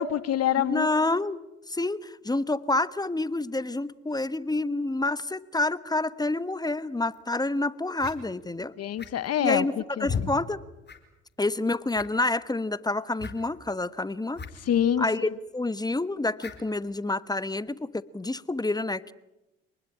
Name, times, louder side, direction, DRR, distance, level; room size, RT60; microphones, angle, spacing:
voice 1, 0.0-0.9 8.8-9.6 10.0-10.3 14.6-15.3, left 10 dB, 55° left, 16 dB, 1.3 m, -26 dB
voice 2, 0.6-1.4 1.7-8.7 9.4-9.7 10.0-10.6 11.4-14.4 15.0-19.1, left 2 dB, 15° left, 16 dB, 1.2 m, -28 dB
sound 1, 7.1-7.2 8.0-8.2 9.0-9.4 10.0-10.3 10.9-11.0 11.3-11.4 11.9-12.3 13.2-13.4 14.3-14.5 14.8-14.9 16.4-16.6, left 6 dB, 35° left, 4.9 m, -34 dB
26.5 x 20.5 x 8.8 m, 0.94 s
hypercardioid pair, 60°, 30 cm